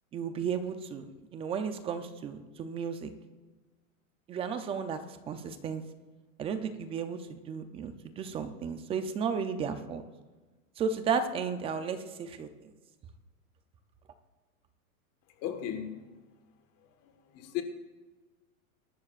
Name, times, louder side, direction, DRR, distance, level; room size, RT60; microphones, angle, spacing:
voice 1, 0.1-3.1 4.3-5.8 6.4-10.0 10.8-12.7, right 6 dB, 15° right, 0.4 m, -34 dB
voice 2, 15.4-15.9 17.0-17.6, left 10 dB, 35° left, 1.5 m, -36 dB
22.0 x 11.5 x 2.5 m
supercardioid pair, 145°, 43 cm